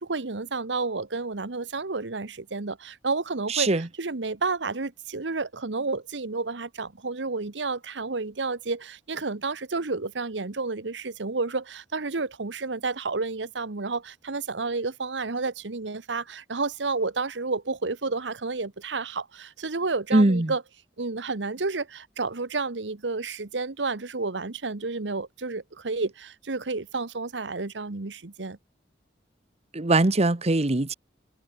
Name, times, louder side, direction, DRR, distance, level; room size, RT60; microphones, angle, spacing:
voice 1, 0.0-3.7 4.0-20.6 21.0-28.6, right 3 dB, 85° right, 1.2 m, -30 dB
voice 2, 3.5-3.9 20.1-20.5 29.7-30.9, right 2 dB, 35° right, 1.1 m, -21 dB
head